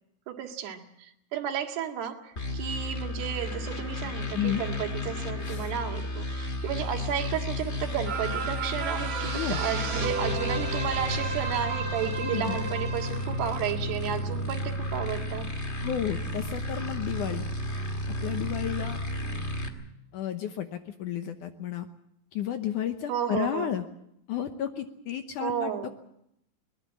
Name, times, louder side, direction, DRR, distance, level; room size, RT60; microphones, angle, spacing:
voice 1, 0.3-15.5 23.1-23.8 25.4-25.9, right 9 dB, 90° right, 4 dB, 4.0 m, -33 dB
sound 1, 2.4-19.7, left 1 dB, 30° left, 1.2 m, -33 dB
voice 2, 4.3-4.7 5.4-5.7 9.3-9.6 12.2-12.6 15.8-17.5 18.2-19.0 20.1-21.9 22.3-23.8 24.3-25.7, left 10 dB, 70° left, 7 dB, 2.0 m, -32 dB
sound 2, 8.0-14.7 15.1-15.2, right 5 dB, 40° right, 3.5 m, -34 dB
22.0 x 20.5 x 7.4 m, 0.78 s
omnidirectional pair, 4.6 m